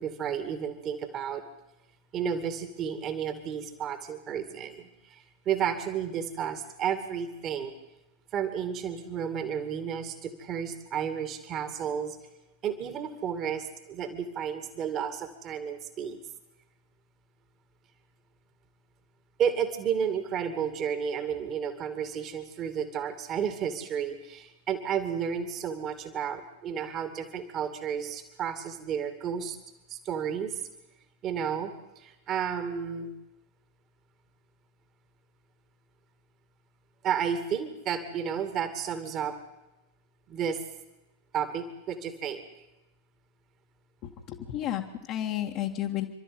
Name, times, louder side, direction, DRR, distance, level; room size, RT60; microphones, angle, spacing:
voice 1, 0.0-1.4 2.1-7.7 8.3-12.2 12.6-16.2 19.4-29.6 29.9-30.6 31.2-33.1 37.0-39.3 40.3-40.6 41.3-42.5, right 8 dB, 35° right, 10 dB, 2.4 m, -32 dB
voice 2, 44.3-46.1, left 12 dB, 40° left, -1 dB, 1.8 m, -31 dB
28.5 x 12.5 x 9.7 m, 0.97 s
figure-of-eight pair, 90°, 0 cm